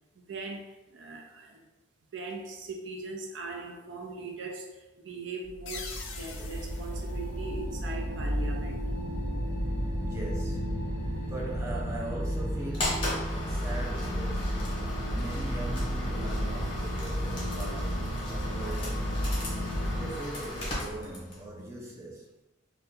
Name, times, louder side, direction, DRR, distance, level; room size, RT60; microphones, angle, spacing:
voice 1, 0.2-1.6 2.1-8.9, right 3 dB, 70° right, 0.5 m, -40 dB
sound 1, 5.4-20.1, equal, 10° left, 1.4 m, -32 dB
sound 2, 5.7-8.2, left 4 dB, 75° left, 0.5 m, -45 dB
voice 2, 10.0-19.2 20.0-22.3, right 2 dB, 15° right, 0.6 m, -41 dB
sound 3, 12.7-21.5, left 1 dB, 25° left, 0.8 m, -36 dB
2.6 x 2.2 x 3.6 m
head